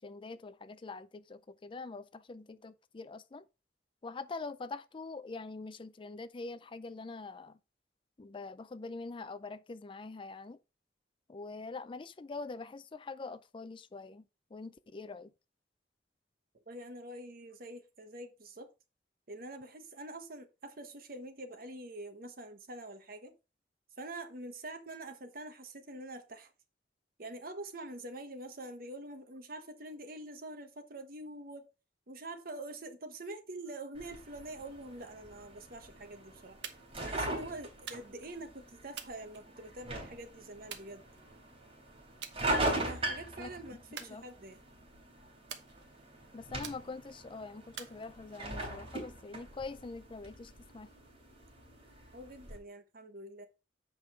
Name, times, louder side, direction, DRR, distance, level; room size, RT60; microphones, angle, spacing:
voice 1, 0.0-3.4 4.0-7.6 8.2-10.6 11.3-14.2 14.5-15.3 43.4-44.2 46.3-50.9, left 3 dB, 30° left, 0.4 m, -44 dB
voice 2, 16.7-18.7 19.3-23.3 24.0-26.5 27.2-31.7 32.1-36.6 37.0-41.0 42.6-44.6 52.1-53.5, right 2 dB, 55° right, 1.2 m, -45 dB
sound 1, 34.0-52.6, right 1 dB, 35° right, 3.4 m, -41 dB
sound 2, 36.6-37.0 37.9-38.3 39.0-39.9 40.7-41.5 42.2-42.4 42.8-43.2 44.0-44.7 45.5-46.1 46.6-47.2 47.8-48.6, right 8 dB, 85° right, 1.1 m, -48 dB
7.8 x 5.3 x 4.4 m
head